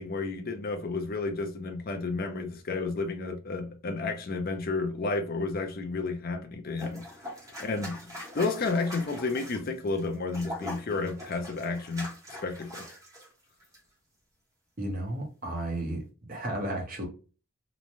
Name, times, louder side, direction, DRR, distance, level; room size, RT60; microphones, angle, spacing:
voice 1, 0.0-7.3 7.6-12.9, left 3 dB, 45° left, 0.5 m, -32 dB
sound 1, 6.8-13.3 13.6-13.8, left 1 dB, 15° right, 0.8 m, -42 dB
voice 2, 14.8-16.0 16.3-17.1, right 1 dB, 40° right, 0.8 m, -33 dB
3.0 x 2.1 x 2.5 m
head